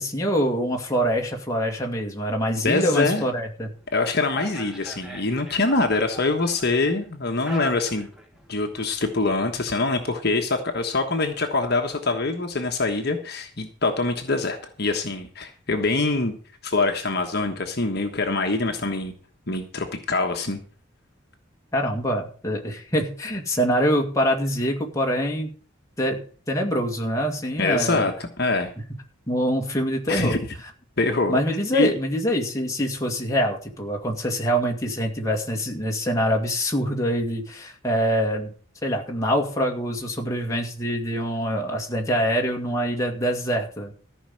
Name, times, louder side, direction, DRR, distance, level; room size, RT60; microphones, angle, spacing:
voice 1, 0.0-3.7 21.7-25.5 26.0-26.2 26.5-28.1 29.3-30.4 31.3-38.5 38.8-43.9, equal, 15° left, 1 dB, 2.0 m, -25 dB
voice 2, 2.6-3.2 3.9-8.1 8.5-16.3 16.6-19.1 19.5-20.6 27.6-28.7 30.1-30.4 31.0-31.4 31.7-31.9, left 3 dB, 50° left, 4 dB, 1.3 m, -24 dB
sound 1, 3.8-9.7, right 1 dB, 5° right, 1.5 m, -42 dB
14.5 x 5.5 x 7.7 m, 0.43 s
head